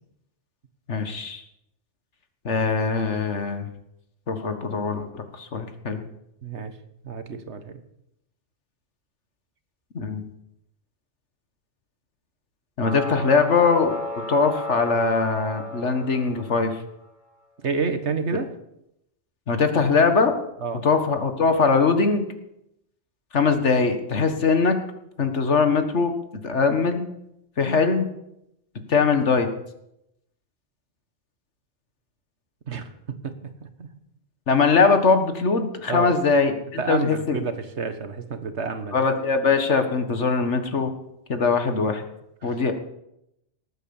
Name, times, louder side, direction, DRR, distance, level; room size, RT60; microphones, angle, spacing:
voice 1, 0.9-1.4 2.4-3.7 4.3-6.0 9.9-10.2 12.8-14.0 14.3-16.8 19.5-20.4 20.8-22.2 23.3-24.8 25.2-26.2 26.4-27.1 27.6-28.1 28.9-29.5 34.5-37.4 38.9-40.9 41.3-42.0 42.4-42.7, left 4 dB, 85° left, 7 dB, 1.9 m, -21 dB
voice 2, 6.4-6.7 7.0-7.8 17.6-18.5 20.6-20.8 32.7-32.9 33.2-33.9 35.9-36.2 36.8-39.0 42.4-42.5, right 5 dB, 75° right, 9 dB, 1.7 m, -29 dB
sound 1, 12.8-16.9, left 1 dB, 40° left, 2.6 m, -34 dB
19.0 x 8.7 x 7.2 m, 0.81 s
omnidirectional pair, 1.2 m